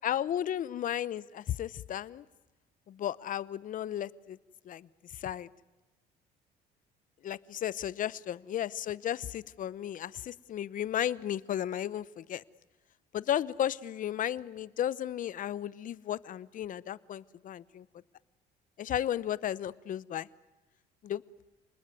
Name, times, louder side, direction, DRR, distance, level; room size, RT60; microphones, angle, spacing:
voice 1, 0.0-2.2 2.9-4.4 4.7-4.9 5.2-5.5 7.2-12.4 13.1-17.8 18.8-20.3 21.0-21.2, left 11 dB, 50° left, 18 dB, 0.9 m, -34 dB
29.5 x 20.0 x 9.4 m, 1.1 s
cardioid pair, 110°, 17 cm